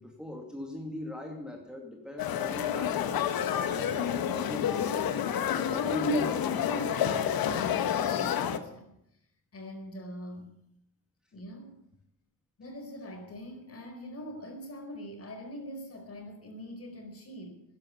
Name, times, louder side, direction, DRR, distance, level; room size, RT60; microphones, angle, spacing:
voice 1, 0.0-5.0 5.5-7.0, left 2 dB, ahead, 1 dB, 2.4 m, -40 dB
sound 1, 2.2-8.6, left 8 dB, 70° left, 1.3 m, -29 dB
voice 2, 8.0-8.9 9.5-10.6 11.3-11.7 12.6-17.6, equal, 40° left, 4 dB, 4.8 m, -43 dB
13.0 x 11.0 x 8.3 m, 0.78 s
cardioid pair, 95°, 38 cm